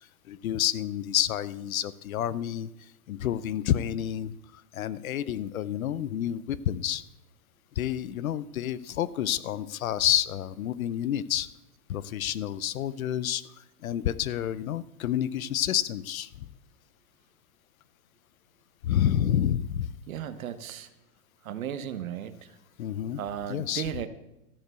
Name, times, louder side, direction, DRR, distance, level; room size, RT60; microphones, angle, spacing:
voice 1, 0.3-2.7 3.1-4.4 4.7-7.0 7.8-11.5 11.9-13.4 13.8-16.5 18.8-19.9 22.8-23.2 23.5-23.9, left 11 dB, 60° left, 18 dB, 0.7 m, -29 dB
voice 2, 20.1-20.9 21.4-22.3 23.2-24.1, right 9 dB, 60° right, 12 dB, 1.1 m, -35 dB
13.5 x 6.8 x 8.0 m, 0.93 s
supercardioid pair, 180°, 47 cm